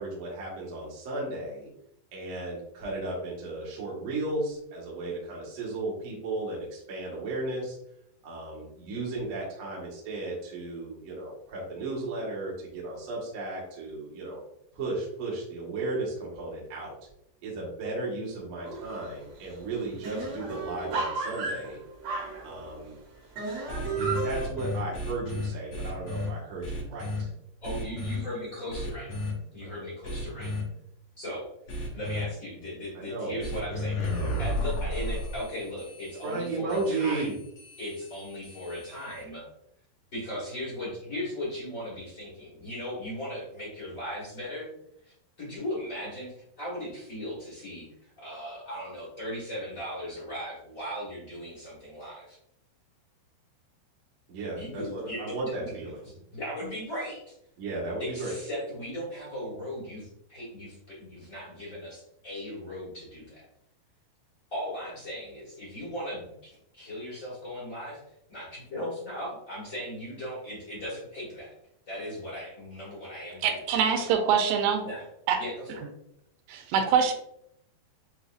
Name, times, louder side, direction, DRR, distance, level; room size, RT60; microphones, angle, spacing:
voice 1, 0.0-1.7 2.1-7.8 8.2-14.4 14.7-17.0 17.4-21.8 22.4-23.0 24.0-27.3 32.9-34.5 34.8-35.1 36.2-37.3 54.3-56.0 57.6-58.4, right 2 dB, 60° right, -5 dB, 1.4 m, -35 dB
sound 1, 18.6-19.1 19.4-19.5 19.7-22.9 23.4-24.4, right 4 dB, 75° right, 1.5 m, -33 dB
sound 2, 23.7-26.3 26.6-27.2 27.6-28.2 28.7-29.3 30.0-30.6 31.7-32.2 33.4-39.2, left 1 dB, 85° left, 1.3 m, -34 dB
voice 2, 27.6-29.1 29.5-30.5 31.2-31.4 31.9-34.0 34.4-37.3 37.8-39.4 40.1-44.7 45.0-45.1 45.4-52.4 54.5-55.7 56.0-57.3 58.0-63.5 64.5-68.0 68.3-71.5 71.9-74.1 74.8-75.1 75.4-75.8, equal, 65° left, -8 dB, 0.7 m, -38 dB
voice 3, 73.4-74.9 75.3-75.4 76.5-77.1, right 7 dB, 90° right, 6 dB, 2.8 m, -24 dB
7.6 x 2.7 x 2.4 m, 0.76 s
omnidirectional pair, 4.7 m